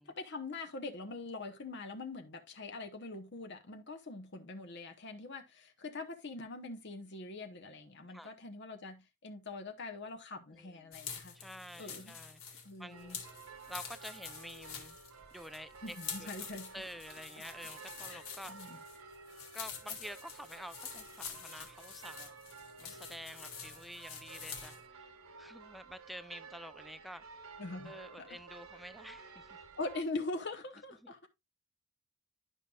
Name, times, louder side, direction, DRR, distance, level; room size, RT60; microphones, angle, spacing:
voice 1, 0.1-11.4 11.8-12.1 12.6-13.2 15.8-16.9 18.1-18.8 27.6-28.4 28.7-28.8 29.8-31.3, left 3 dB, 55° left, 0.9 m, -43 dB
voice 2, 10.5-11.0 11.3-13.2 13.7-15.0 15.3-16.0 16.2-16.3 16.7-18.5 19.5-22.3 22.8-27.5 27.8-29.6 31.0-31.1, equal, ahead, 0.4 m, -49 dB
sound 1, 10.9-24.8, left 6 dB, 80° left, 1.9 m, -47 dB
sound 2, 12.9-30.0, right 5 dB, 85° right, 1.2 m, -53 dB
11.0 x 5.5 x 2.3 m
head